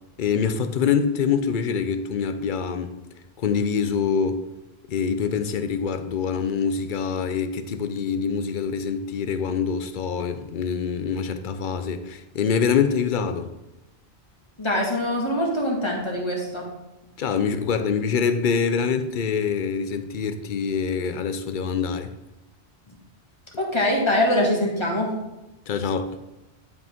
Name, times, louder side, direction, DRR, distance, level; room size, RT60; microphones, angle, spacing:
voice 1, 0.2-3.0 3.4-4.4 4.9-13.5 17.2-22.1 25.7-26.2, left 6 dB, 55° left, 10 dB, 0.7 m, -25 dB
voice 2, 14.6-16.7 22.9-23.0 23.6-25.1, left 1 dB, 25° left, -2 dB, 1.8 m, -23 dB
10.5 x 5.4 x 3.6 m, 0.98 s
omnidirectional pair, 1.1 m